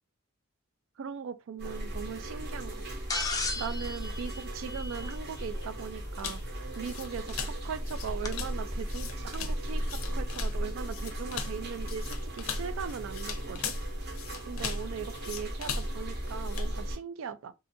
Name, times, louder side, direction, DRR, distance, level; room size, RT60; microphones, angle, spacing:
voice 1, 1.0-2.8 3.6-13.7 14.5-17.5, right 6 dB, 65° right, 0.3 m, -39 dB
sound 1, 1.6-17.0, equal, 50° right, 0.7 m, -36 dB
sound 2, 3.1-5.4 7.0-7.1 8.2-8.3, left 3 dB, 15° left, 0.4 m, -35 dB
sound 3, 6.2-16.7, left 4 dB, 80° left, 0.5 m, -39 dB
2.7 x 2.4 x 2.5 m
head